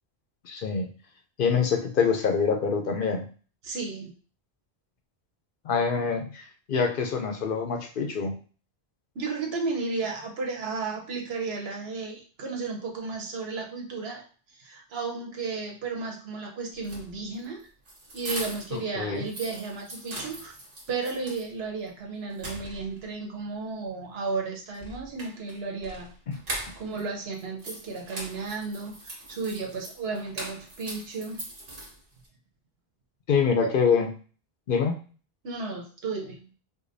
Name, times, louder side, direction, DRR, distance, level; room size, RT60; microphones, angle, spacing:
voice 1, 0.4-0.9 1.4-3.3 5.6-8.3 18.7-19.2 33.3-34.1 34.7-34.9, left 6 dB, 60° left, 4 dB, 0.7 m, -25 dB
voice 2, 3.6-4.1 9.1-14.2 14.5-17.6 18.1-20.5 20.9-26.1 26.8-31.4 33.6-33.7 35.4-36.5, right 4 dB, 75° right, 1 dB, 1.1 m, -33 dB
sound 1, 16.7-18.8 19.1-21.5 21.9-22.0 22.3-23.1 24.7-27.0 27.3-32.3, right 1 dB, 60° right, 1.3 m, -40 dB
4.9 x 2.2 x 2.6 m, 0.39 s
omnidirectional pair, 1.0 m